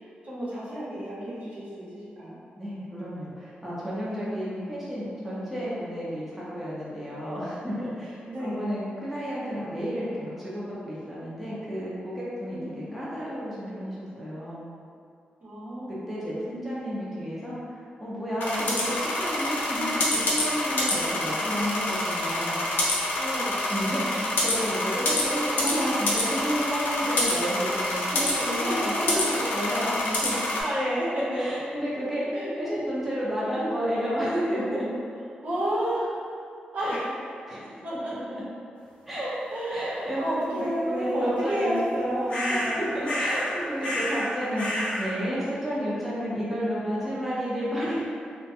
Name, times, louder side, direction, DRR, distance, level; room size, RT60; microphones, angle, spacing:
voice 1, 0.2-2.4 4.0-4.3 5.5-5.6 8.2-8.7 12.5-12.9 15.4-16.0 18.6-18.7 23.1-23.6 28.6-29.8 30.3-31.5 32.3-32.5 35.4-36.1 36.7-37.1 37.8-38.1 39.5-42.9, equal, 55° right, -9 dB, 0.9 m, -31 dB
voice 2, 2.6-14.6 15.9-17.6 18.0-22.7 23.7-29.3 29.5-30.3 31.4-34.9 36.8-37.0 37.5-38.4 39.1-39.3 39.7-41.8 42.5-48.0, equal, 5° right, -9 dB, 0.6 m, -31 dB
sound 1, 18.4-30.6, left 1 dB, 85° left, 0.6 m, -27 dB
sound 2, 42.3-42.8 43.0-43.5 43.8-44.3 44.6-45.1, left 1 dB, 35° left, 0.9 m, -29 dB
3.0 x 2.2 x 2.8 m, 2.4 s
wide cardioid pair, 110°, 3 cm